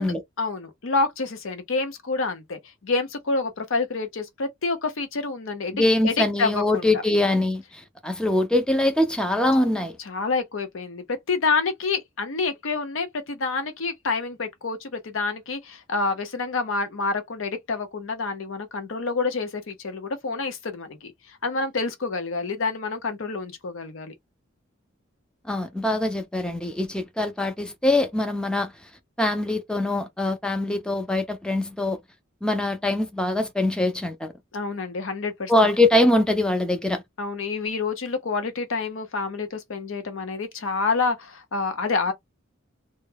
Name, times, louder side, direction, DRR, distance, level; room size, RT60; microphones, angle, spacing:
voice 1, 0.0-6.9 10.1-21.1 21.4-24.1 34.5-35.5 37.2-42.1, left 4 dB, 70° left, 0.6 m, -28 dB
voice 2, 5.7-9.9 25.5-28.7 29.2-32.0 32.4-34.3 35.5-37.0, left 1 dB, 5° left, 0.4 m, -23 dB
2.2 x 2.0 x 3.2 m
head